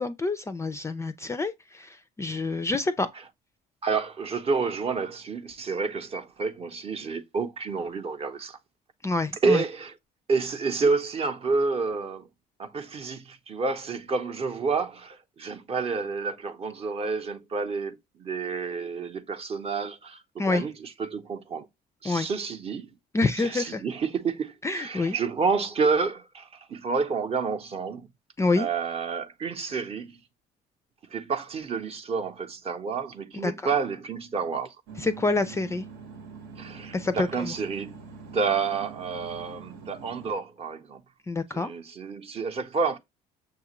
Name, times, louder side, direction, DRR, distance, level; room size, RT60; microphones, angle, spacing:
voice 1, 0.0-3.1 9.0-9.6 20.4-20.6 22.0-22.3 23.1-23.8 24.6-25.2 28.4-28.7 33.4-33.7 35.0-35.9 36.9-37.5 41.3-41.7, left 3 dB, 15° left, 0.3 m, -27 dB
voice 2, 3.8-8.6 9.4-9.9 10.3-12.3 12.6-21.7 22.0-22.9 23.4-28.1 28.6-30.2 31.1-34.7 36.6-38.0 38.3-41.0 41.5-43.0, right 4 dB, 35° right, 0.7 m, -29 dB
sound 1, 34.9-40.3, right 5 dB, 75° right, 1.0 m, -44 dB
6.5 x 2.4 x 2.9 m
cardioid pair, 110°, 17 cm